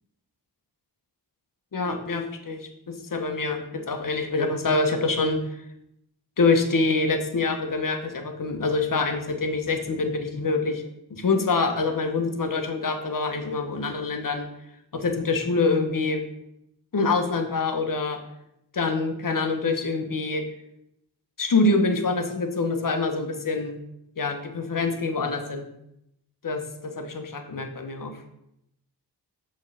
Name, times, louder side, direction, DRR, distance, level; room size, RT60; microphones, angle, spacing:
voice 1, 1.7-5.4 6.4-10.8 11.1-14.5 14.9-16.2 16.9-18.2 18.7-20.4 21.4-23.8 24.2-25.7 26.4-28.2, left 3 dB, 50° left, 5 dB, 1.0 m, -25 dB
6.1 x 3.2 x 5.6 m, 0.81 s
cardioid pair, 40°, 42 cm